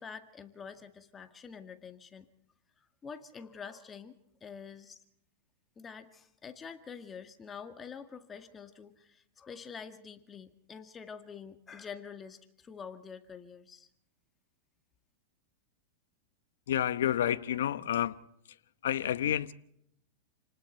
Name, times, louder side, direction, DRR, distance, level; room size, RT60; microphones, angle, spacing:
voice 1, 0.0-2.3 2.8-5.0 5.8-13.9, left 6 dB, 20° left, 1.9 m, -47 dB
voice 2, 16.7-18.2 18.5-18.6 18.8-19.5, left 11 dB, 80° left, 0.9 m, -29 dB
29.5 x 19.5 x 4.5 m
supercardioid pair, 135°, 0 cm